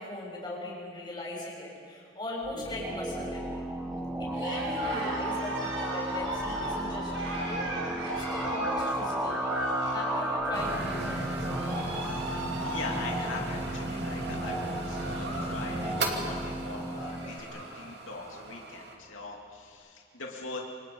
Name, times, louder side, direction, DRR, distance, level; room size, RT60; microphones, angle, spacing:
voice 1, 0.0-3.7 4.2-11.8, left 1 dB, 20° left, -4 dB, 7.0 m, -39 dB
sound 1, 2.4-17.4, right 1 dB, 5° right, 1.7 m, -34 dB
Cheering, 4.3-15.6 15.9-16.3 16.7-16.8 17.0-17.8, right 1 dB, 80° right, 5.3 m, -37 dB
sound 2, 10.5-18.9, right 2 dB, 55° right, 2.7 m, -37 dB
voice 2, 12.6-20.6, left 3 dB, 90° left, -1 dB, 2.8 m, -41 dB
28.0 x 26.0 x 5.6 m, 2.4 s
head